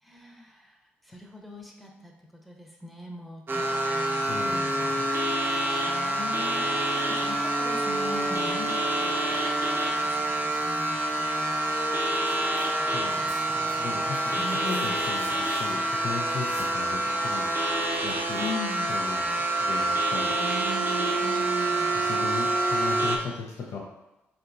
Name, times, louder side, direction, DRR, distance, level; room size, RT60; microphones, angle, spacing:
voice 1, 0.0-5.1 5.8-15.0 18.4-18.9 20.2-22.2, left 1 dB, ahead, 0 dB, 0.8 m, -41 dB
sound 1, 3.5-23.2, right 1 dB, 40° right, 0.6 m, -27 dB
voice 2, 4.1-5.1 12.8-15.3 15.6-17.5 18.0-18.4 18.9-20.4 21.9-23.8, left 5 dB, 60° left, -2 dB, 0.5 m, -37 dB
sound 2, 12.1-12.7 12.9-16.8 18.4-18.5, right 2 dB, 90° right, 1.3 m, -50 dB
3.3 x 2.8 x 2.5 m, 0.96 s
hypercardioid pair, 45°, 6 cm